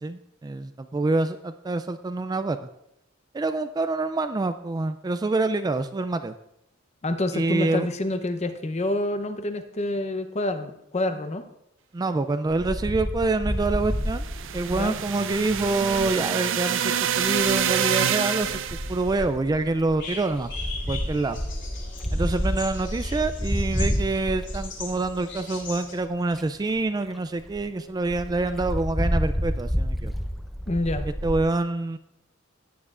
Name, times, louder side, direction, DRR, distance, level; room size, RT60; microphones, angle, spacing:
voice 1, 0.0-2.7 3.3-6.3 7.3-7.9 11.9-14.2 14.5-18.6 18.9-20.5 20.9-21.4 22.1-30.1 31.2-32.0, right 3 dB, 20° right, 10 dB, 0.3 m, -26 dB
voice 2, 7.0-11.4 14.7-14.9 30.7-31.1, left 1 dB, 35° left, 8 dB, 0.7 m, -27 dB
Wind, 12.5-16.1 17.2-17.7 18.4-25.4 26.0-26.1 26.3-26.4 26.8-26.9 27.1-27.2 27.5-27.6 28.1-31.4, equal, ahead, 0.7 m, -29 dB
sound 1, 14.0-19.0, right 8 dB, 65° right, 0.6 m, -26 dB
sound 2, 20.0-25.9, left 4 dB, 60° left, 2.9 m, -40 dB
16.5 x 9.5 x 2.5 m, 0.83 s
head